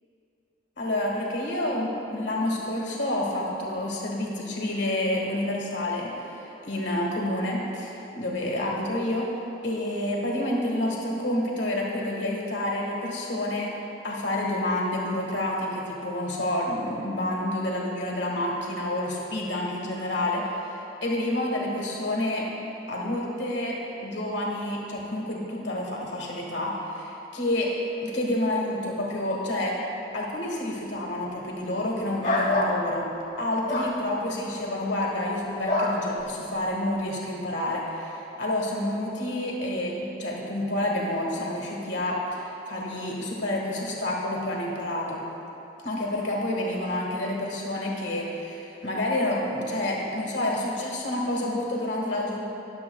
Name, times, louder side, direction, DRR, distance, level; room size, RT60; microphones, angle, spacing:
voice 1, 0.8-9.3 9.6-13.7 14.0-20.7 21.0-22.5 22.9-27.7 28.0-29.8 30.1-33.1 33.4-45.2 45.8-52.4, left 1 dB, 75° left, -2 dB, 1.4 m, -29 dB
sound 1, 32.2-32.8 33.7-33.9 35.7-36.0, left 2 dB, 40° left, 1.3 m, -24 dB
19.5 x 7.1 x 2.3 m, 3.0 s
head